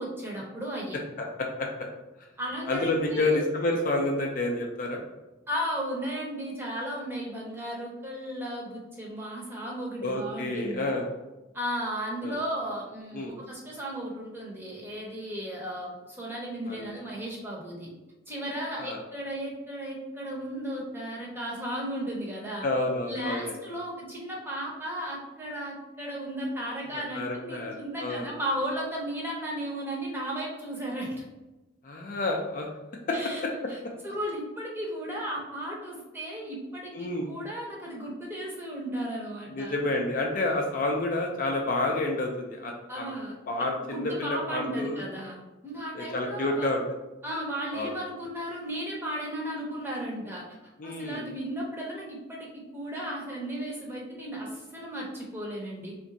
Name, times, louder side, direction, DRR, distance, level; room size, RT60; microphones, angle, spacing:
voice 1, 0.0-1.0 2.4-3.4 5.5-10.8 11.5-17.9 18.3-22.6 23.1-31.2 33.1-33.4 33.7-33.8 34.0-39.7 42.9-43.3 43.8-46.7 47.2-50.6 50.8-55.9, equal, 10° right, -3 dB, 0.7 m, -35 dB
voice 2, 1.2-1.9 2.7-5.0 10.0-11.1 12.2-12.4 13.1-13.3 16.7-16.9 18.7-19.0 22.6-23.6 26.9-28.3 31.8-32.7 33.1-33.2 33.4-33.7 36.9-37.3 39.5-43.1 43.5-45.1 45.9-46.8 47.7-47.9 50.8-51.2, left 2 dB, 40° left, 1 dB, 0.4 m, -29 dB
3.4 x 2.5 x 3.9 m, 1.1 s
head